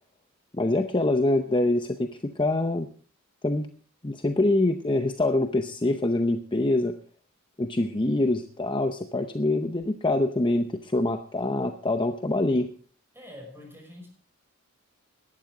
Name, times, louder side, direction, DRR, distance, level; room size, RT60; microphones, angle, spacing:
voice 1, 0.5-2.9 3.4-3.7 4.0-7.0 7.6-12.7, left 2 dB, 20° left, 7 dB, 0.7 m, -25 dB
voice 2, 13.1-14.1, left 1 dB, 10° right, 1 dB, 5.6 m, -45 dB
17.5 x 12.0 x 3.8 m, 0.41 s
head